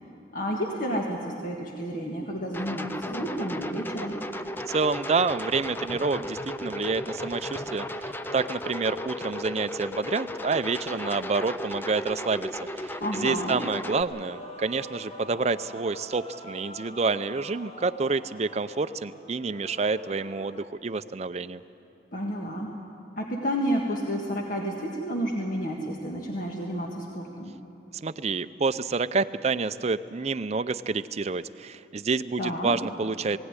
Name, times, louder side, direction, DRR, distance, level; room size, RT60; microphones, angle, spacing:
voice 1, 0.3-4.2 13.0-13.6 22.1-22.8 23.2-27.5 32.4-32.7, equal, 50° left, 0 dB, 1.6 m, -30 dB
sound 1, 2.5-14.0, left 1 dB, 10° left, 0.6 m, -35 dB
voice 2, 4.7-21.6 28.0-33.4, right 4 dB, 40° right, 12 dB, 0.5 m, -28 dB
Male singing / Female singing / Musical instrument, 14.1-20.6, equal, 35° left, 2.0 m, -45 dB
19.5 x 16.5 x 9.7 m, 2.8 s
head